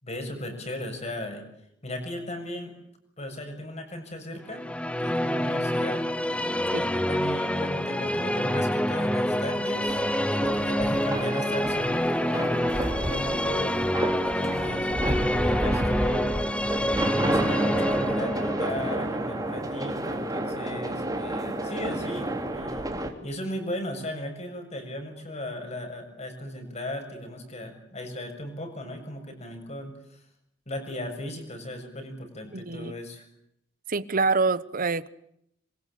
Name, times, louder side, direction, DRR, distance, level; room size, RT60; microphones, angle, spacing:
voice 1, 0.0-1.5 1.8-2.7 3.2-4.6 5.0-6.0 6.8-16.4 17.1-22.9 23.2-30.2 30.7-33.3, left 1 dB, 35° left, 7.2 m, -36 dB
sound 1, 4.5-20.5, equal, 5° left, 1.0 m, -27 dB
sound 2, 9.9-23.1, right 1 dB, 20° right, 3.4 m, -31 dB
voice 2, 32.5-32.9 33.9-35.1, right 4 dB, 50° right, 1.1 m, -26 dB
26.5 x 23.5 x 8.6 m
head